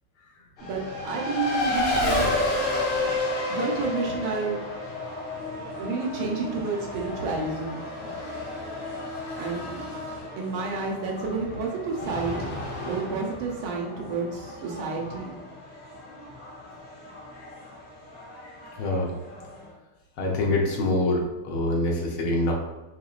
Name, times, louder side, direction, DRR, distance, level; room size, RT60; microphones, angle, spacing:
Race car auto racing, 0.6-19.7, left 2 dB, 65° left, 1.8 m, -32 dB
voice 1, 0.6-2.4 3.5-4.6 5.8-7.8 9.4-9.8 10.4-15.3, right 4 dB, 85° right, -1 dB, 1.6 m, -30 dB
voice 2, 18.8-19.1 20.2-22.5, left 2 dB, 90° left, -1 dB, 1.7 m, -25 dB
4.8 x 2.9 x 2.4 m, 1.1 s
omnidirectional pair, 2.2 m